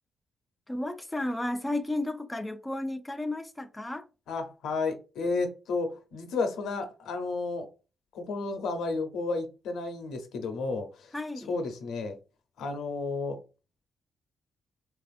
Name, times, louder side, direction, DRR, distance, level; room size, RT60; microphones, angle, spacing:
voice 1, 0.7-4.1 11.1-11.5, left 1 dB, 10° left, 0.3 m, -33 dB
voice 2, 4.3-7.7 8.1-11.1 11.5-12.2 12.6-13.4, left 3 dB, 85° left, 0.7 m, -32 dB
3.3 x 2.4 x 2.4 m
cardioid pair, 85°, 0 cm